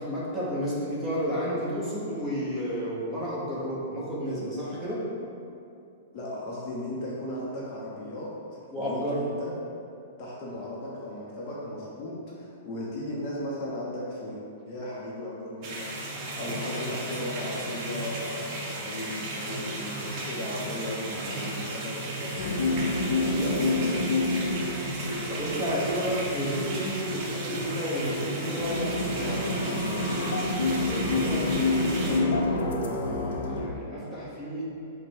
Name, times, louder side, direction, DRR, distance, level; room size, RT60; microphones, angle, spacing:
voice 1, 0.0-5.1 8.7-9.3 25.3-30.3 30.8-34.8, equal, ahead, -10 dB, 1.0 m, -32 dB
voice 2, 6.1-8.3 8.8-9.5 10.2-22.8 23.2-24.0, left 1 dB, 35° left, -5 dB, 0.7 m, -36 dB
sound 1, 15.6-32.2, right 2 dB, 35° right, 0.7 m, -35 dB
sound 2, 22.4-33.7, left 2 dB, 70° left, 0.5 m, -28 dB
5.1 x 2.2 x 4.4 m, 2.5 s
hypercardioid pair, 160°, 0 cm